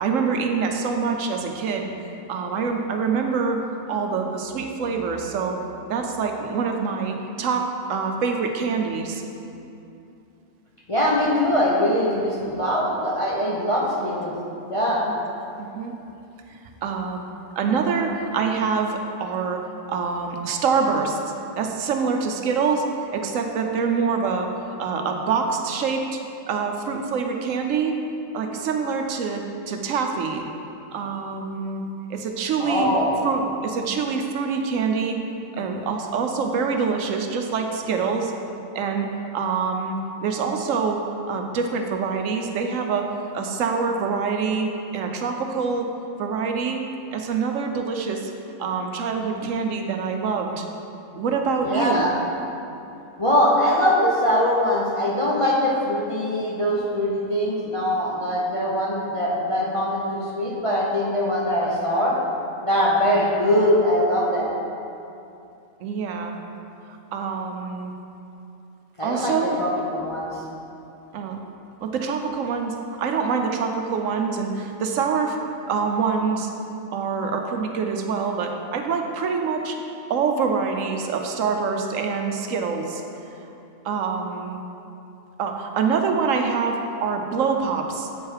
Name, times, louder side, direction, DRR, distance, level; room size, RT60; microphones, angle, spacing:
voice 1, 0.0-1.9 2.3-3.6 3.9-5.6 5.9-9.2 15.1-15.2 15.6-16.0 16.8-17.2 17.6-19.6 19.9-21.2 21.6-22.9 23.1-24.5 24.8-26.2 26.5-28.0 28.3-30.5 30.9-31.8 32.1-32.9 33.2-35.2 35.5-38.3 38.7-39.1 39.3-41.0 41.3-43.1 43.3-44.7 44.9-45.9 46.2-46.8 47.1-48.3 48.6-50.7 51.1-52.1 65.8-66.4 67.1-67.9 69.0-69.6 71.1-71.4 71.8-75.4 75.7-76.5 76.9-79.8 80.1-83.0 83.8-84.6 85.4-88.1, right 5 dB, 70° right, 4 dB, 1.0 m, -25 dB
voice 2, 10.9-14.3 14.7-15.1 32.6-33.2 51.6-52.2 53.2-62.2 62.6-64.6 69.0-70.3, equal, 30° left, -6 dB, 0.6 m, -22 dB
8.1 x 4.7 x 4.6 m, 2.7 s
omnidirectional pair, 1.4 m